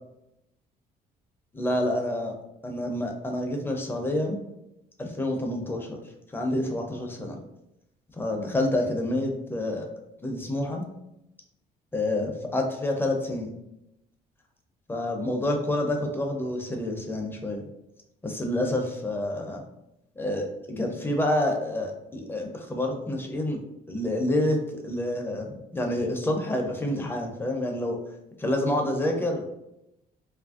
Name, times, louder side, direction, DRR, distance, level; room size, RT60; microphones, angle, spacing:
voice 1, 1.5-2.3 2.6-4.4 5.0-6.0 6.3-7.4 8.1-9.9 10.2-10.9 11.9-13.6 14.9-17.7 18.2-19.6 20.2-23.6 23.9-28.0 28.4-29.5, left 1 dB, 15° left, 2 dB, 0.5 m, -28 dB
2.8 x 2.5 x 2.4 m, 0.86 s
cardioid pair, 110°, 17 cm